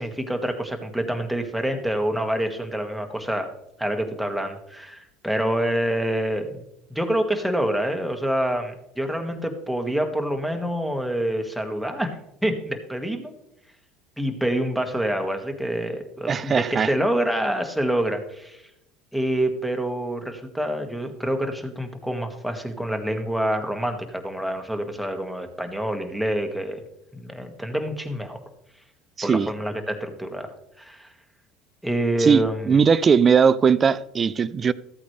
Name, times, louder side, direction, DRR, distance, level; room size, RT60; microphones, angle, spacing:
voice 1, 0.0-3.5 3.8-6.6 6.9-12.2 12.4-13.3 14.2-18.6 19.1-26.8 27.1-28.4 29.2-31.1 31.8-32.7, right 1 dB, ahead, 1.8 m, -27 dB
voice 2, 16.3-16.9 29.2-29.5 32.2-34.7, right 6 dB, 35° right, 0.5 m, -19 dB
14.0 x 8.5 x 3.4 m
hypercardioid pair, 80°, 0 cm